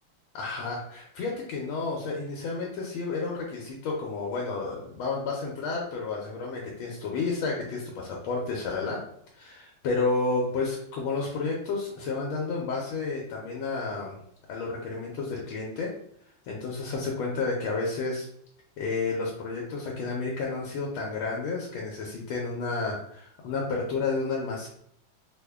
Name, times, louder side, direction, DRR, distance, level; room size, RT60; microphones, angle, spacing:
voice 1, 0.3-9.0 9.3-14.1 14.5-15.9 16.4-18.3 18.8-24.7, left 3 dB, 80° left, -1 dB, 1.4 m, -31 dB
3.7 x 2.1 x 3.3 m, 0.71 s
omnidirectional pair, 2.2 m